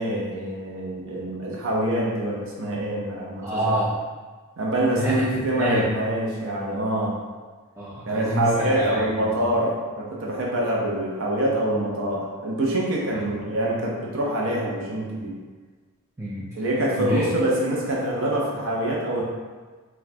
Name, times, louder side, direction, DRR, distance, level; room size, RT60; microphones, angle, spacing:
voice 1, 0.0-3.6 4.6-7.1 8.1-15.3 16.5-19.2, right 1 dB, 65° right, -3 dB, 0.6 m, -25 dB
voice 2, 3.4-4.0 5.0-5.3 5.6-5.9 7.8-9.3 13.1-13.2 16.2-16.7 17.0-17.3, equal, 10° right, -9 dB, 0.3 m, -27 dB
4.1 x 2.2 x 2.7 m, 1.4 s
head